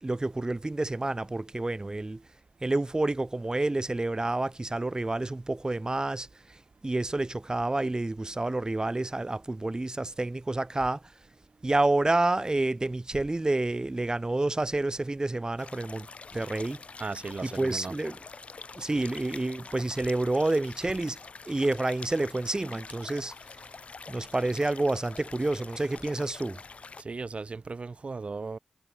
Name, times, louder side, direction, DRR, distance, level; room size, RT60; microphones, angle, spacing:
voice 1, 0.0-2.2 2.6-11.0 11.6-16.8 17.4-18.2 18.7-21.2 21.4-23.3 24.1-26.6, right 2 dB, 35° right, 1.2 m, -29 dB
sound 1, 15.6-27.0, left 4 dB, 80° left, 2.6 m, -46 dB
voice 2, 17.0-17.9 27.0-28.6, right 4 dB, 70° right, 1.1 m, -36 dB
cardioid pair, 40°, 2 cm